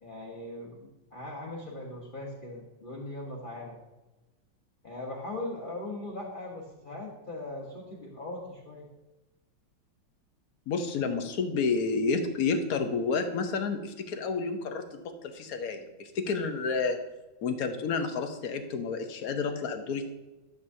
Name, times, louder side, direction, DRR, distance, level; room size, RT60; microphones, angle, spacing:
voice 1, 0.0-3.8 4.8-8.9, left 2 dB, 30° left, -3 dB, 1.1 m, -39 dB
voice 2, 10.7-17.0 17.4-20.1, left 4 dB, 60° left, 7 dB, 1.1 m, -30 dB
12.0 x 7.2 x 2.7 m, 1.1 s
omnidirectional pair, 2.1 m